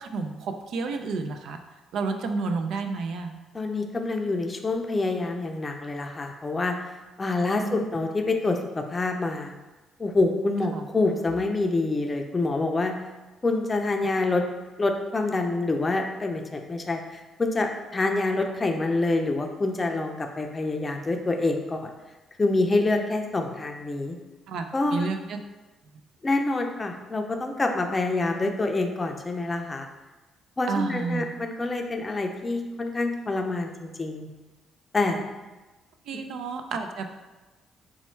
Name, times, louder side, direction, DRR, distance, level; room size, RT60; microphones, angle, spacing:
voice 1, 0.0-1.6 1.9-3.3 7.6-7.9 10.7-10.8 24.5-24.7 24.9-25.4 30.7-31.2 36.1-37.1, right 4 dB, 75° right, 6 dB, 0.4 m, -30 dB
voice 2, 3.5-6.7 7.2-9.5 10.0-12.9 13.4-14.4 14.8-21.9 22.4-24.2 24.7-25.1 26.2-29.9 30.6-34.3 34.9-35.2, left 2 dB, 25° left, 4 dB, 0.5 m, -26 dB
4.2 x 2.3 x 4.3 m, 1.2 s
cardioid pair, 85°, 0 cm